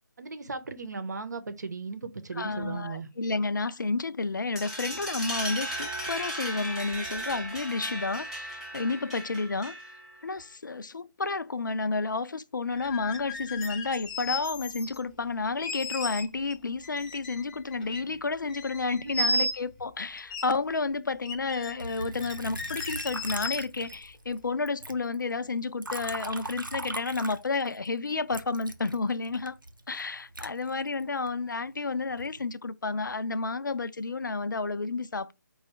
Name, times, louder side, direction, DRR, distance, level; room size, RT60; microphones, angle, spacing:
voice 1, 0.2-3.1 19.0-19.4, right 4 dB, 60° right, 0.8 m, -37 dB
voice 2, 2.4-9.9 10.2-29.6 29.9-35.3, left 3 dB, 70° left, 0.4 m, -31 dB
sound 1, 4.6-10.1, right 1 dB, 5° right, 0.9 m, -36 dB
sound 2, 12.7-15.0 15.6-16.5 16.8-18.2 18.5-19.8 20.2-20.4 20.8-20.9 21.2-24.0, left 2 dB, 20° left, 0.6 m, -35 dB
Liquid, 21.8-24.4 24.7-27.9 28.3-31.3 31.9-32.4, right 2 dB, 90° right, 0.7 m, -40 dB
4.7 x 2.3 x 3.1 m
figure-of-eight pair, 150°, 11 cm